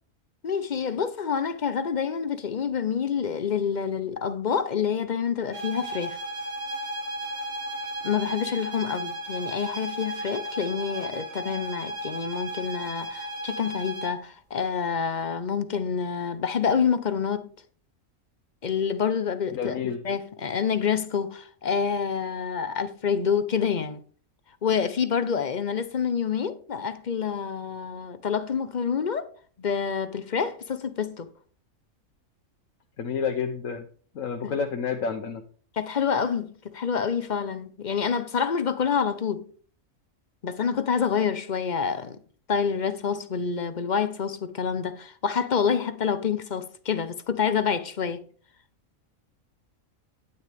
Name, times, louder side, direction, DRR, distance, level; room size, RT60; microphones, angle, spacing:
voice 1, 0.4-6.2 8.0-17.5 18.6-24.0 24.6-29.3 29.6-31.3 34.4-34.6 35.8-39.4 40.4-42.2 42.5-48.2, left 6 dB, 45° left, 0.7 m, -27 dB
sound 1, 5.5-14.2, right 1 dB, 65° right, 3.9 m, -34 dB
voice 2, 19.5-20.0 33.0-33.9 34.1-35.4, left 6 dB, 75° left, 1.2 m, -29 dB
9.7 x 9.3 x 3.4 m
omnidirectional pair, 1.4 m